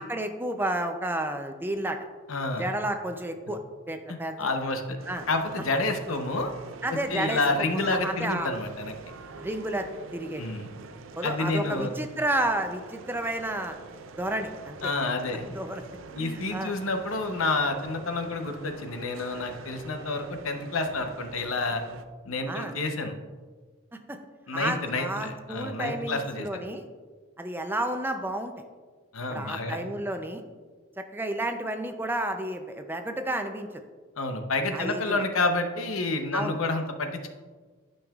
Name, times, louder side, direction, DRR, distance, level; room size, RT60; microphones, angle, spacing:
voice 1, 0.0-2.0 2.6-3.6 3.9-4.4 5.1-5.3 6.8-7.4 7.7-8.5 9.4-9.9 10.1-10.4 11.2-13.8 14.2-14.9 15.5-15.8 16.2-16.7 22.5-22.7 24.1-24.2 24.5-26.8 27.4-28.5 29.3-30.4 31.1-33.8 34.7-35.2 36.3-36.6, right 1 dB, 10° right, 6 dB, 0.4 m, -31 dB
voice 2, 2.3-2.7 4.1-5.0 5.3-6.5 6.9-8.9 10.4-10.7 11.2-11.9 14.8-15.4 16.1-21.8 22.3-23.1 24.5-26.6 29.1-29.8 34.2-37.3, left 2 dB, 85° left, 5 dB, 0.8 m, -29 dB
sound 1, 5.0-22.0, right 4 dB, 70° right, 0.5 m, -45 dB
11.5 x 5.4 x 2.4 m, 1.4 s
head